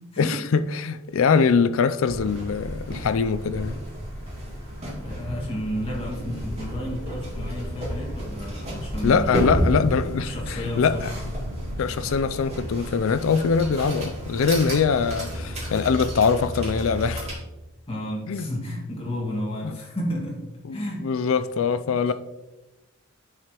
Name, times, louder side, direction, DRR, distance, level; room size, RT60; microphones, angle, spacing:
voice 1, 0.2-3.7 9.0-11.1 11.8-17.3 18.3-18.5 19.6-19.7 20.6-22.1, left 5 dB, 65° left, 0.4 m, -23 dB
sound 1, 2.1-17.3, equal, 30° right, 2.7 m, -31 dB
voice 2, 5.0-9.7 10.2-11.1 17.9-20.4 20.7-21.0 21.8-22.1, left 1 dB, 25° left, 1.9 m, -32 dB
10.5 x 4.8 x 3.0 m
head